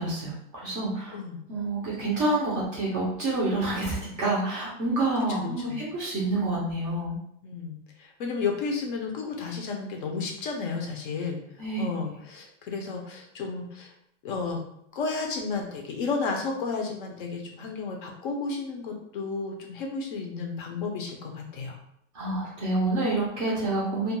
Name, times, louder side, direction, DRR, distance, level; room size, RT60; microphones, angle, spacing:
voice 1, 0.0-1.1 1.5-7.2 11.6-11.8 22.1-24.1, right 2 dB, 25° right, -5 dB, 0.4 m, -28 dB
voice 2, 5.3-5.8 7.4-11.4 11.8-13.9 14.2-14.6 14.9-21.8, left 4 dB, 45° left, 2 dB, 0.4 m, -32 dB
2.2 x 2.2 x 2.9 m, 0.74 s
supercardioid pair, 160°, 39 cm